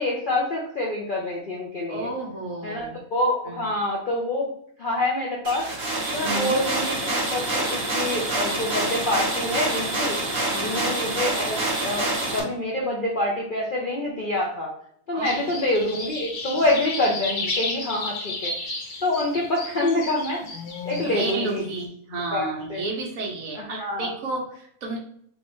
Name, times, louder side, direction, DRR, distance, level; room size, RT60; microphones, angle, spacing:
voice 1, 0.0-2.1 2.6-4.5 4.8-5.7 6.1-10.2 10.6-14.7 15.1-18.5 19.0-20.4 20.9-21.6 22.3-22.8 23.6-24.1, left 1 dB, 55° left, -3 dB, 0.5 m, -26 dB
voice 2, 1.9-3.0 3.5-3.6 6.2-6.6 10.5-10.9 15.1-15.4 21.0-25.0, right 2 dB, 65° right, -1 dB, 1.3 m, -31 dB
sound 1, 5.4-12.4, right 2 dB, 45° right, 1.3 m, -26 dB
sound 2, 15.2-21.7, left 3 dB, 85° left, 1.4 m, -33 dB
3.5 x 3.1 x 3.0 m, 0.64 s
omnidirectional pair, 1.6 m